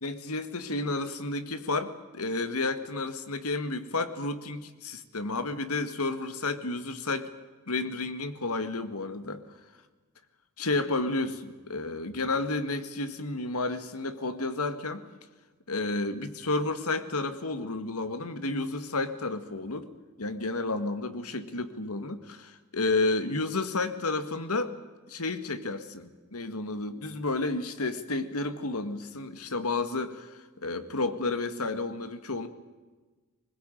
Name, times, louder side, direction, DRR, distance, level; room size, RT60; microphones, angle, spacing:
voice 1, 0.0-7.3 7.7-9.4 10.6-15.0 15.7-19.9 20.2-24.7 25.1-32.5, left 3 dB, 90° left, 10 dB, 1.9 m, -31 dB
21.0 x 20.5 x 9.1 m, 1.3 s
head